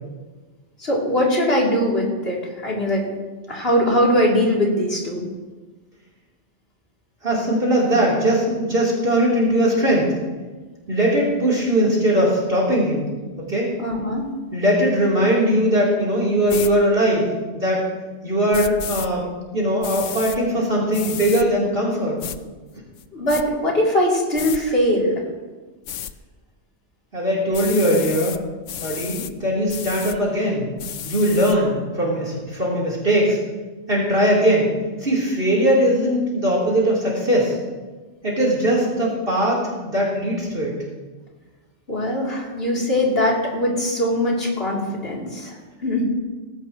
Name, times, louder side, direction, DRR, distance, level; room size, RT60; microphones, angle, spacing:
voice 1, 0.8-3.0 3.5-5.2 13.8-14.3 23.1-25.2 41.9-46.0, left 1 dB, 55° left, -4 dB, 3.7 m, -21 dB
voice 2, 7.2-10.2 10.9-13.1 13.4-13.7 14.5-17.8 18.2-19.3 19.5-22.2 27.1-28.4 28.8-30.7 31.0-33.4 33.9-34.7 35.0-37.6 38.2-40.8, equal, 50° right, -4 dB, 4.0 m, -20 dB
sound 1, 16.5-16.7 18.5-19.1 19.8-20.4 20.9-21.5 22.2-22.4 23.0-23.4 24.3-24.6 25.9-26.1 27.5-28.4 28.7-29.3 29.7-30.2 30.8-31.6, left 9 dB, 90° left, 1.0 m, -32 dB
19.0 x 16.5 x 3.1 m, 1.3 s
omnidirectional pair, 1.2 m